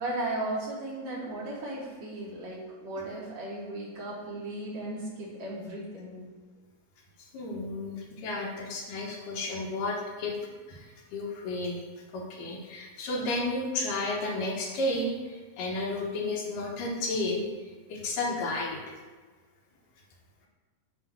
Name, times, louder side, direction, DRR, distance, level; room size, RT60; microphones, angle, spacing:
voice 1, 0.0-6.2, right 1 dB, 60° right, -6 dB, 2.6 m, -36 dB
voice 2, 7.2-11.8 12.1-17.5 17.9-19.0, left 2 dB, 80° left, -1 dB, 2.6 m, -32 dB
7.7 x 3.1 x 6.0 m, 1.4 s
omnidirectional pair, 3.9 m